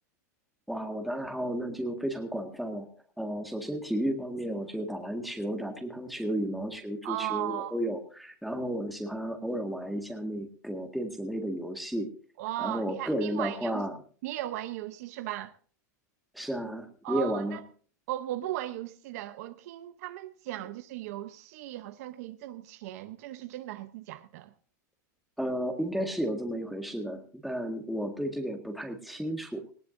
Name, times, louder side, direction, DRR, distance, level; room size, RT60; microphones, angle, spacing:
voice 1, 0.7-2.9 3.2-12.1 12.6-13.9 16.3-17.6 25.4-29.6, right 1 dB, ahead, 1.8 m, -33 dB
voice 2, 7.0-7.7 12.4-13.8 14.2-15.5 17.0-17.6 18.1-24.5, right 14 dB, 60° right, 0.8 m, -37 dB
19.0 x 17.0 x 2.6 m
supercardioid pair, 145°, 10 cm